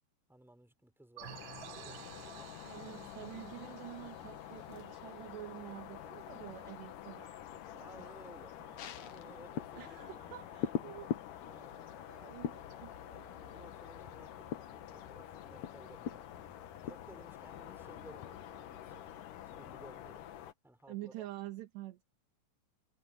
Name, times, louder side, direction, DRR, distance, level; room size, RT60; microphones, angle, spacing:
voice 1, 0.3-2.5 7.8-10.8 11.4-11.8 12.7-13.0 13.3-19.0 19.4-21.3, right 1 dB, ahead, 6.2 m, -58 dB
sound 1, 1.2-20.5, left 11 dB, 65° left, 2.2 m, -49 dB
sound 2, 1.2-5.6, right 21 dB, 90° right, 3.0 m, -53 dB
voice 2, 2.6-8.1 9.8-13.3 20.9-22.0, right 15 dB, 70° right, 3.7 m, -48 dB
sound 3, 8.8-20.5 20.8-20.9, left 9 dB, 85° left, 1.5 m, -45 dB
omnidirectional pair, 5.2 m